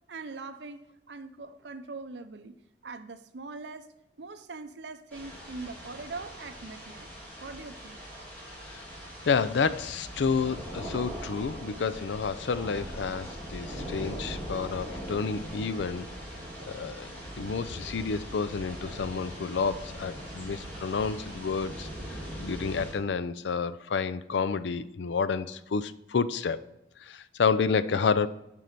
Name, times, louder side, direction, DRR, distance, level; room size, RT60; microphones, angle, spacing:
voice 1, 0.1-2.6 2.8-3.9 4.2-7.1 7.4-8.0, right 3 dB, 80° right, 0.7 m, -42 dB
sound 1, 5.1-22.9, equal, 10° left, 2.6 m, -41 dB
voice 2, 9.3-16.1 16.7-17.1 17.4-21.9 22.4-26.6 27.0-28.3, left 5 dB, 85° left, 0.5 m, -29 dB
7.5 x 5.4 x 6.6 m
head